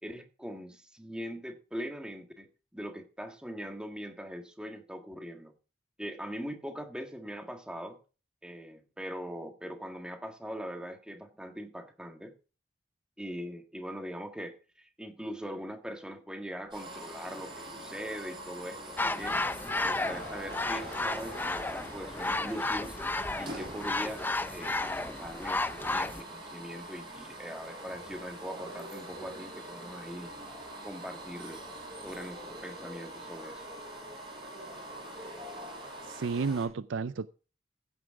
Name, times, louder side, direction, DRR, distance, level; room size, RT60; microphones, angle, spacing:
voice 1, 0.0-2.5 2.7-5.5 6.0-8.0 8.4-12.3 13.2-19.4 19.8-23.0 23.4-30.3 30.8-31.6 32.0-33.6, equal, 5° right, 1.7 m, -41 dB
sound 1, 16.7-36.7, right 1 dB, 25° right, 6.7 m, -44 dB
sound 2, 19.0-26.2, left 2 dB, 10° left, 0.4 m, -33 dB
voice 2, 36.0-37.3, right 5 dB, 85° right, 0.5 m, -32 dB
15.5 x 9.4 x 3.7 m
head